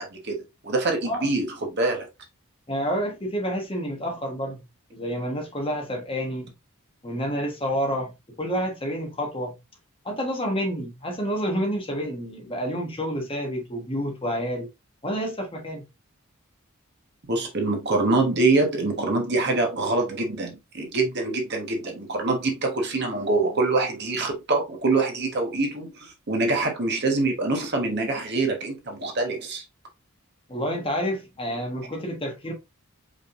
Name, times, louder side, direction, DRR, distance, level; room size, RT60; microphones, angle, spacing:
voice 1, 0.0-2.1 17.3-29.6, right 3 dB, 50° right, 1.3 m, -25 dB
voice 2, 2.7-4.6 4.9-6.5 7.0-8.1 8.4-9.6 10.0-14.7 15.0-15.9 30.5-32.5, equal, 25° left, 1.2 m, -29 dB
5.1 x 3.6 x 2.5 m
head